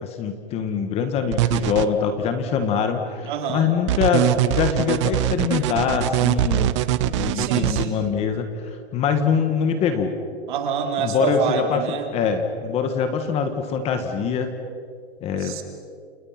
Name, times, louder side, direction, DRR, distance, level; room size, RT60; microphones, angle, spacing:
voice 1, 0.0-6.7 7.0-10.2 11.0-11.8 12.1-14.5 15.2-15.6, left 6 dB, 20° left, 7 dB, 1.4 m, -24 dB
sound 1, 1.3-1.9 3.9-7.9, right 14 dB, 30° right, 0.7 m, -22 dB
voice 2, 3.2-3.7 7.3-8.1 10.5-12.1 15.4-15.6, right 6 dB, 50° right, 4 dB, 3.9 m, -27 dB
29.5 x 28.5 x 5.8 m, 2.3 s
hypercardioid pair, 165°, 32 cm